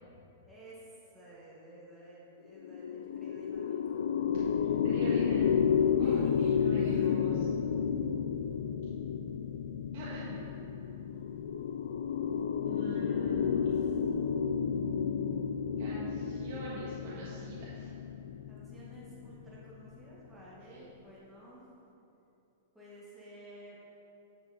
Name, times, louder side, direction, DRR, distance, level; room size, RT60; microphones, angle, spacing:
voice 1, 0.4-4.1 5.9-6.6 6.9-7.2 13.1-14.1 18.5-21.6 22.7-23.8, right 1 dB, 5° right, -9 dB, 1.5 m, -53 dB
sound 1, 2.5-20.0, left 7 dB, 75° left, 0.3 m, -31 dB
voice 2, 4.6-5.6 5.9-7.4 9.9-10.5 12.6-13.9 15.8-17.9 20.7-20.8, right 3 dB, 45° right, -7 dB, 1.4 m, -44 dB
9.9 x 6.0 x 4.2 m, 2.9 s
supercardioid pair, 165°, 0 cm